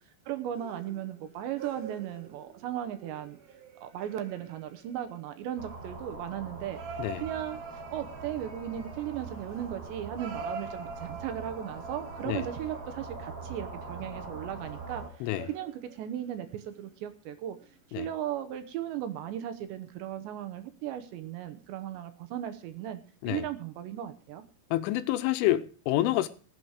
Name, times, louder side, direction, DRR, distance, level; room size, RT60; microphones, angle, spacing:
voice 1, 0.3-3.4 3.8-6.8 7.2-17.6 18.0-23.0 23.3-24.4, right 11 dB, 75° right, 2.9 m, -37 dB
sound 1, 0.5-5.8 6.7-13.3 14.6-16.2 16.6-16.9 17.6-17.7, right 4 dB, 60° right, 2.4 m, -45 dB
sound 2, 5.6-15.1, right 3 dB, 30° right, 4.5 m, -43 dB
voice 2, 24.7-26.3, left 14 dB, 80° left, 3.2 m, -28 dB
20.0 x 8.0 x 4.8 m
omnidirectional pair, 5.8 m